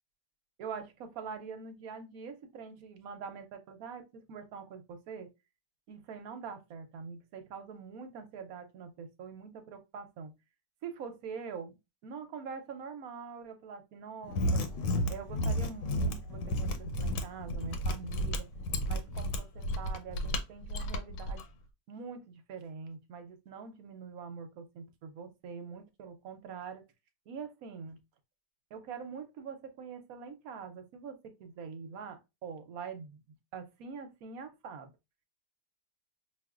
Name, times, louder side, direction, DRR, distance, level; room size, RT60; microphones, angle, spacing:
voice 1, 0.6-5.3 5.9-10.3 10.8-11.8 12.0-14.6 15.1-16.7 17.0-18.5 18.9-21.5 21.9-26.8 27.3-28.0 28.7-33.2 33.5-34.9, right 6 dB, 65° right, 1.0 m, -44 dB
Mechanisms, 14.2-21.4, equal, 85° left, 1.3 m, -32 dB
5.7 x 2.5 x 2.4 m
omnidirectional pair, 1.9 m